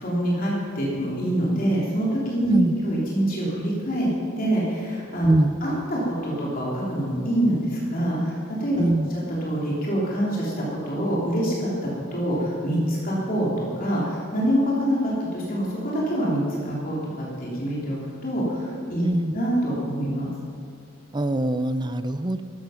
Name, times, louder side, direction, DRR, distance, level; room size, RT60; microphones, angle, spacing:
voice 1, 0.0-4.1 4.4-5.3 5.6-8.8 9.1-11.7 12.1-18.0 18.2-19.0 19.3-20.3, right 1 dB, 45° left, -5 dB, 3.3 m, -25 dB
voice 2, 5.3-5.6 8.8-9.1 19.0-19.4 21.1-22.4, right 1 dB, 20° right, 12 dB, 0.5 m, -22 dB
15.0 x 13.0 x 5.8 m, 2.3 s
head